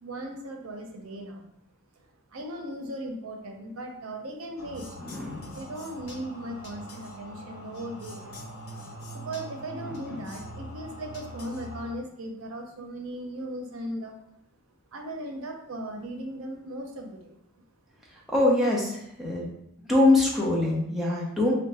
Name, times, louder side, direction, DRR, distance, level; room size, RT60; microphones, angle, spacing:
voice 1, 0.0-1.4 2.3-4.9 5.5-8.2 9.1-14.1 14.9-17.4, right 1 dB, 85° right, 3 dB, 0.6 m, -37 dB
sound 1, 4.6-11.9, equal, 85° left, 0.9 m, -42 dB
voice 2, 5.0-5.6 10.1-10.2 18.3-19.4 19.9-21.5, left 2 dB, ahead, -5 dB, 0.6 m, -23 dB
3.6 x 2.2 x 4.0 m, 0.76 s
head